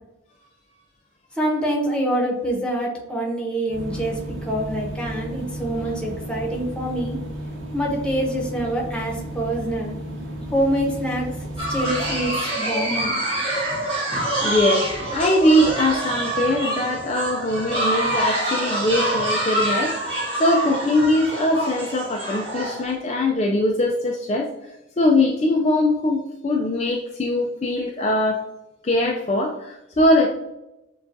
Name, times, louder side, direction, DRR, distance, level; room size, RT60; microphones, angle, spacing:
voice 1, 1.4-7.2 7.7-9.9 10.5-11.3 11.7-13.2, right 1 dB, 5° left, -2 dB, 0.9 m, -25 dB
sound 1, 3.7-12.3, right 1 dB, 80° right, 0.9 m, -33 dB
sound 2, 11.6-22.9, right 1 dB, 30° right, 1.5 m, -26 dB
voice 2, 14.4-28.4 28.8-30.3, left 1 dB, 35° left, 0 dB, 0.4 m, -21 dB
6.7 x 2.3 x 2.6 m, 0.93 s
head